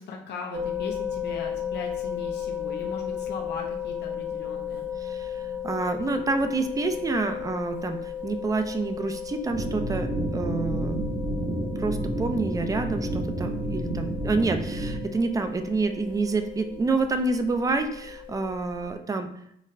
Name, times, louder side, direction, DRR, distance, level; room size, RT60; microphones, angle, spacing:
voice 1, 0.0-4.9, left 4 dB, 60° left, 0 dB, 0.5 m, -39 dB
sound 1, 0.5-18.9, left 8 dB, 85° right, 1.4 m, -35 dB
voice 2, 5.0-10.1 10.3-11.0 11.8-19.3, right 3 dB, 20° right, 7 dB, 0.3 m, -28 dB
sound 2, 9.5-15.0, right 2 dB, 45° right, 0.8 m, -30 dB
4.0 x 2.1 x 2.5 m, 0.71 s
cardioid pair, 90°, 20 cm